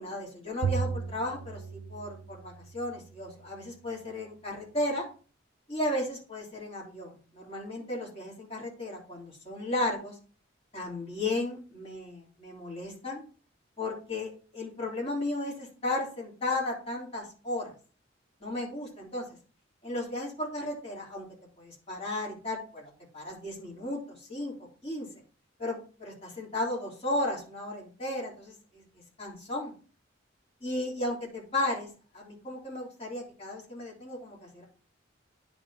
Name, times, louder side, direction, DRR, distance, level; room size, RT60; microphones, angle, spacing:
voice 1, 0.0-5.0 5.7-10.2 10.7-13.2 13.8-17.7 18.4-19.4 19.8-21.3 21.6-24.5 24.8-25.1 25.6-28.8 29.2-29.7 30.6-34.6, left 1 dB, 30° left, -4 dB, 3.3 m, -34 dB
Bowed string instrument, 0.6-3.2, right 6 dB, 75° right, 0.4 m, -35 dB
10.0 x 4.2 x 4.1 m, 0.39 s
head